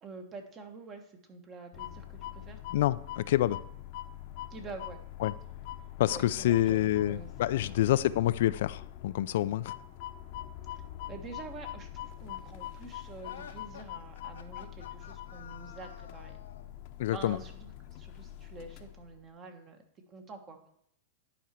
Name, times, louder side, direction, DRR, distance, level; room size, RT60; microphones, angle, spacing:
voice 1, 0.0-2.6 4.5-5.0 6.1-7.9 10.7-10.8 11.1-16.3 17.1-19.8 20.1-20.6, right 4 dB, 25° right, 6 dB, 1.3 m, -47 dB
sound 1, 1.7-19.2, left 12 dB, 50° left, 0.8 m, -44 dB
voice 2, 2.7-3.6 5.2-5.3 6.0-9.7 17.0-17.4, left 13 dB, 65° left, 15 dB, 0.3 m, -27 dB
sound 2, 13.2-16.7, left 8 dB, 85° left, 0.8 m, -50 dB
10.5 x 5.0 x 4.3 m, 0.73 s
hypercardioid pair, 130°, 0 cm